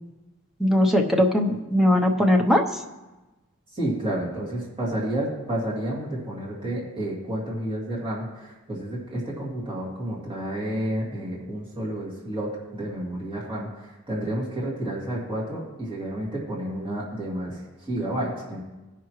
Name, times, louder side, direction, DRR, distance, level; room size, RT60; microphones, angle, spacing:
voice 1, 0.6-2.6, left 1 dB, ahead, 1 dB, 0.8 m, -20 dB
voice 2, 3.7-18.6, right 1 dB, 25° right, -6 dB, 2.3 m, -30 dB
17.0 x 5.8 x 3.1 m, 1.1 s
head